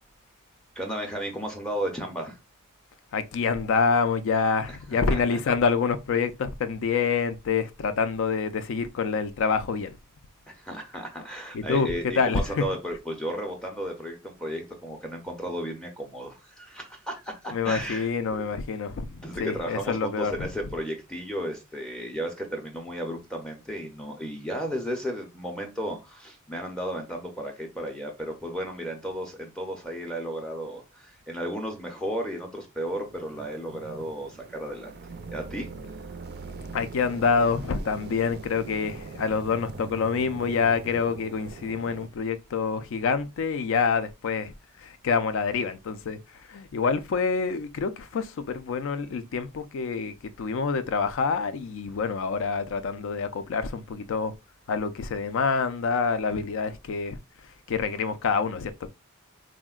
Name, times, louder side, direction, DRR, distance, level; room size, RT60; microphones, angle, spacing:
voice 1, 0.8-2.4 4.9-5.2 10.5-18.5 19.1-34.9 35.3-35.7, equal, 5° left, 0.5 m, -34 dB
voice 2, 3.1-10.0 11.5-12.6 17.5-20.5 36.7-44.5 44.8-46.2 46.5-54.3 54.7-57.2 57.7-58.7, left 5 dB, 65° left, 0.4 m, -27 dB
sound 1, 32.9-42.1, right 3 dB, 50° right, 0.4 m, -42 dB
3.6 x 2.1 x 2.3 m
head